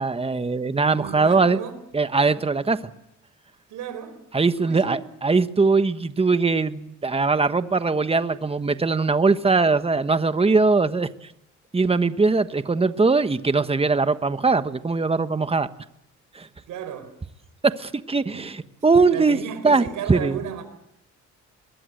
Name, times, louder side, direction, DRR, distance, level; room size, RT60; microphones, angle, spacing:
voice 1, 0.0-1.6 1.9-2.8 4.3-11.1 11.7-15.7 16.3-16.5 17.6-19.4 19.6-20.4, right 4 dB, 20° right, 1.3 m, -21 dB
voice 2, 0.8-1.8 3.7-4.2 4.6-5.1 16.7-17.1 18.3-18.5 19.0-20.6, right 8 dB, 85° right, 4.4 m, -34 dB
22.5 x 21.0 x 7.9 m
cardioid pair, 90°, 30 cm